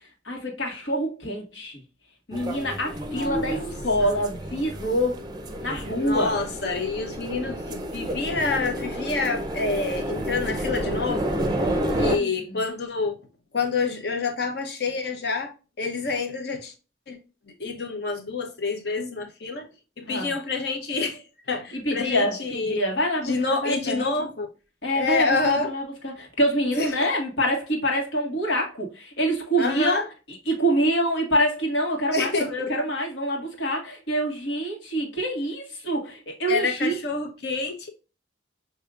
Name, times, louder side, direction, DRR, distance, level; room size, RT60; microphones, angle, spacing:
voice 1, 0.2-1.8 2.3-5.2 5.6-6.3 11.6-12.6 20.1-20.3 21.7-24.1 24.8-30.0 30.3-37.0, equal, 85° left, 1.6 m, -26 dB
sound 1, 2.3-12.2, equal, 25° right, 0.5 m, -30 dB
voice 2, 3.1-3.7 4.0-4.1 6.0-11.4 11.9-13.2 13.5-15.5 15.8-16.7 17.1-17.2 17.6-19.7 20.0-22.8 23.2-24.5 24.9-25.7 26.7-27.1 29.6-30.1 32.1-32.5 36.5-37.9, left 4 dB, 60° left, 0.9 m, -28 dB
6.4 x 2.7 x 2.4 m
head